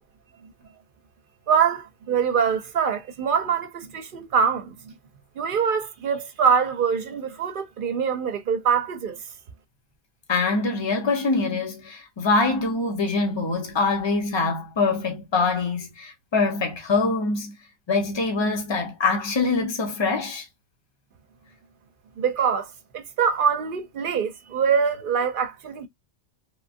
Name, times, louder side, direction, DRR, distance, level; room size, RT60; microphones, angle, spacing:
voice 1, 1.5-4.9 5.4-9.2 22.2-22.7 22.9-25.9, right 6 dB, 60° right, 0.6 m, -24 dB
voice 2, 10.3-17.5 17.9-20.5, left 3 dB, 25° left, 0.7 m, -24 dB
3.1 x 2.3 x 2.5 m
omnidirectional pair, 1.2 m